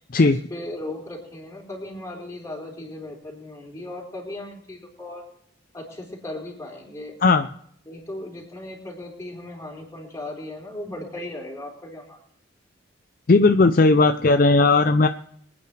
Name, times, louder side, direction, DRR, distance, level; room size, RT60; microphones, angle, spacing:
voice 1, 0.2-5.2 5.7-7.2 7.9-12.2, left 1 dB, 15° left, -2 dB, 4.2 m, -37 dB
voice 2, 13.3-15.1, left 3 dB, 45° left, 8 dB, 0.5 m, -16 dB
24.5 x 9.7 x 3.3 m, 0.65 s
head